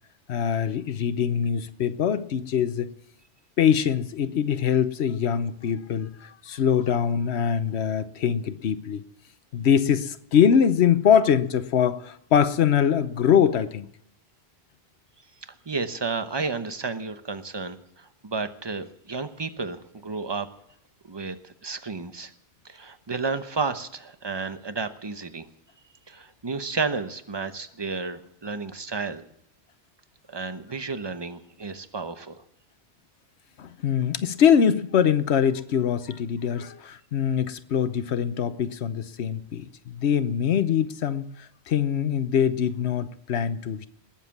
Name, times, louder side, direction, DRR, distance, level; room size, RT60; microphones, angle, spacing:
voice 1, 0.3-2.9 3.6-9.0 9.5-13.9 33.6-43.9, left 8 dB, 85° left, 13 dB, 1.1 m, -23 dB
voice 2, 15.7-20.5 21.1-22.3 22.6-25.5 26.1-29.2 30.3-32.4, right 4 dB, 25° right, 10 dB, 0.9 m, -32 dB
20.5 x 7.4 x 7.1 m, 0.74 s
omnidirectional pair, 1.1 m